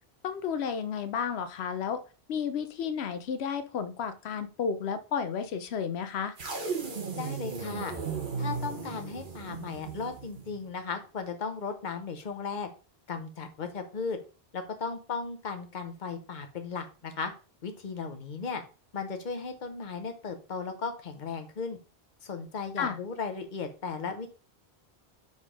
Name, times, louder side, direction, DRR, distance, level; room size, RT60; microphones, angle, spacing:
voice 1, 0.2-2.0 2.3-6.3 22.8-23.0, left 7 dB, 90° left, 10 dB, 0.9 m, -32 dB
sound 1, 6.4-10.7, right 5 dB, 55° right, 1.1 m, -36 dB
voice 2, 7.1-8.0 8.4-12.7 13.1-14.2 14.5-17.3 17.6-18.6 18.9-21.8 22.2-24.3, left 5 dB, 50° left, 6 dB, 1.0 m, -36 dB
5.1 x 4.0 x 5.0 m, 0.36 s
omnidirectional pair, 1.1 m